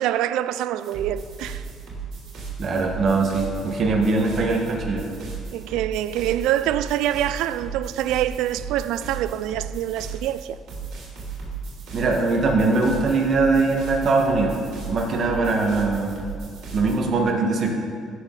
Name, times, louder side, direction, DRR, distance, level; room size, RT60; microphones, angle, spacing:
voice 1, 0.0-1.6 5.5-10.6, right 12 dB, 85° right, 0.3 m, -25 dB
sound 1, 0.8-17.0, right 5 dB, 70° right, 2.9 m, -36 dB
voice 2, 2.6-5.1 11.9-14.5 14.9-16.2 16.7-17.7, right 3 dB, 45° right, 1.6 m, -21 dB
15.5 x 6.4 x 4.0 m
cardioid pair, 115°, 0 cm